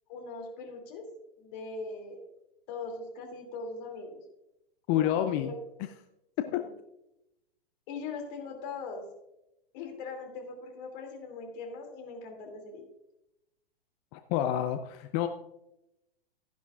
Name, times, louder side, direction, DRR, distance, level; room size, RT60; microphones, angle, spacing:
voice 1, 0.1-1.1 1.4-2.2 2.7-4.2 4.9-5.5 6.4-6.7 7.9-9.1 9.7-12.9, left 4 dB, 45° left, 3 dB, 2.7 m, -41 dB
voice 2, 4.9-5.5 6.5-6.7 14.1-15.3, left 11 dB, 20° left, 8 dB, 0.3 m, -28 dB
14.0 x 10.5 x 2.4 m, 0.88 s
hypercardioid pair, 125°, 31 cm